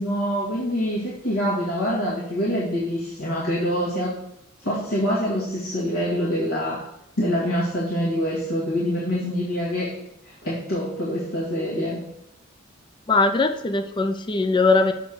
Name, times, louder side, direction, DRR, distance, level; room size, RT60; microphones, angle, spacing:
voice 1, 0.0-4.2 4.6-6.9 7.2-9.9 10.2-12.0, equal, 75° left, -7 dB, 1.8 m, -25 dB
voice 2, 13.1-14.9, left 3 dB, 20° left, 7 dB, 0.4 m, -20 dB
6.8 x 4.2 x 6.5 m, 0.82 s
head